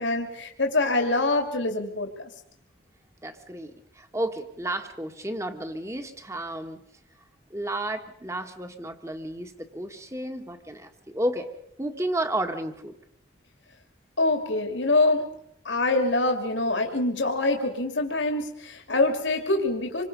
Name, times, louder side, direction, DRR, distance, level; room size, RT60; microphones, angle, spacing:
voice 1, 0.0-2.3 14.2-15.2 15.6-20.0, left 2 dB, 75° left, 4 dB, 2.6 m, -25 dB
voice 2, 3.2-6.8 7.5-11.5 11.8-12.9, right 1 dB, 15° right, 7 dB, 1.8 m, -32 dB
27.0 x 24.0 x 5.5 m, 0.75 s
head